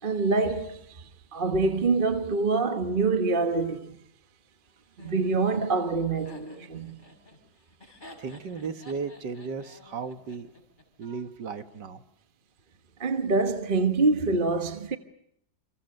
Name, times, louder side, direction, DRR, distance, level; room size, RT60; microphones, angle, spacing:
voice 1, 0.0-4.0 5.0-7.0 13.0-15.0, right 3 dB, 30° right, 1.3 m, -26 dB
Laughter, 5.0-11.1, left 1 dB, 25° left, 6.0 m, -50 dB
voice 2, 8.2-10.5 11.0-12.0, right 5 dB, 75° right, 2.2 m, -35 dB
28.5 x 27.5 x 6.7 m
omnidirectional pair, 1.9 m